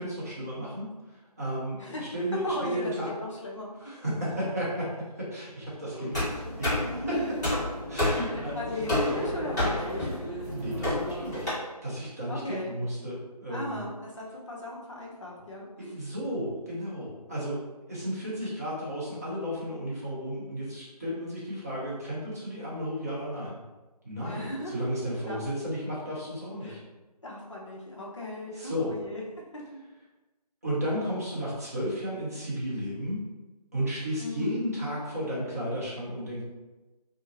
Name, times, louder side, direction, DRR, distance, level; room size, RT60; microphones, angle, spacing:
voice 1, 0.0-3.1 3.8-4.9 5.2-6.2 6.6-7.2 7.9-8.5 10.5-11.5 11.8-13.9 15.8-17.5 17.9-23.6 24.0-26.8 28.5-28.9 30.6-33.2 33.7-36.4, equal, 25° right, -7 dB, 0.7 m, -33 dB
voice 2, 2.4-3.7 5.9-6.1 7.0-7.3 8.1-8.3 8.5-10.1 10.3-10.4 12.3-12.7 13.5-15.9 24.2-24.7 25.3-25.4 26.6-26.8 27.2-29.2 34.2-34.7, left 1 dB, 50° left, -4 dB, 0.8 m, -37 dB
sound 1, 6.1-11.5, left 1 dB, 25° left, 1.5 m, -30 dB
2.7 x 2.5 x 2.7 m, 1.1 s
figure-of-eight pair, 160°, 20 cm